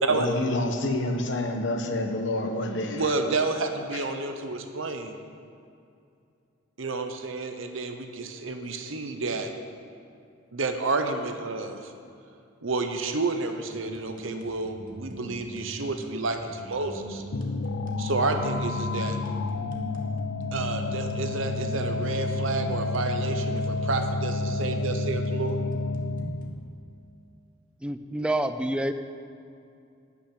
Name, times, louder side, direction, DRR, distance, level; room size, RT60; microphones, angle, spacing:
voice 1, 0.1-3.0 3.9-4.0, left 2 dB, 65° left, 4 dB, 1.1 m, -28 dB
voice 2, 2.9-5.2 6.8-9.5 10.5-11.9 12.6-17.2 18.0-19.2 20.5-25.6, right 3 dB, 80° right, 6 dB, 0.9 m, -30 dB
sound 1, 13.7-26.5, right 1 dB, 45° right, 1.2 m, -42 dB
sound 2, 17.3-26.6, left 2 dB, 85° left, 0.5 m, -30 dB
voice 3, 27.8-28.9, right 1 dB, 5° right, 10 dB, 0.4 m, -27 dB
11.5 x 6.2 x 8.4 m, 2.5 s
head